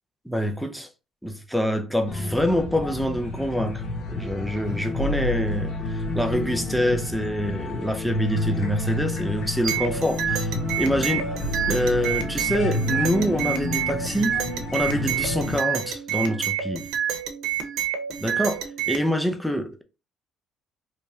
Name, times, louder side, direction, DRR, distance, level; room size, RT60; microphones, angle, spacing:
voice 1, 0.3-0.9 1.2-3.8 4.1-5.7 6.1-11.3 11.7-14.4 14.7-16.8 18.2-19.8, equal, ahead, 0.5 m, -26 dB
sound 1, 2.1-15.6, left 2 dB, 45° left, 1.2 m, -30 dB
sound 2, 5.0-7.2 11.4-14.6, equal, 80° left, 1.7 m, -33 dB
sound 3, 9.6-19.1, right 9 dB, 65° right, 0.8 m, -28 dB
3.1 x 2.6 x 3.4 m
cardioid pair, 130°, 0 cm